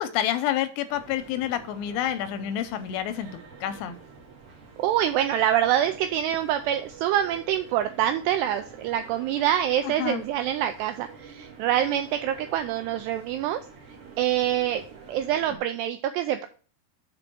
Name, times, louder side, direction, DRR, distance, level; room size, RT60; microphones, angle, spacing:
voice 1, 0.0-3.9 10.0-10.2, left 11 dB, 80° left, 11 dB, 2.5 m, -28 dB
sound 1, 0.9-15.6, right 5 dB, 55° right, 1.8 m, -48 dB
voice 2, 4.8-13.6 14.2-16.5, right 11 dB, 85° right, 8 dB, 2.4 m, -25 dB
6.1 x 4.9 x 5.9 m, 0.40 s
omnidirectional pair, 5.3 m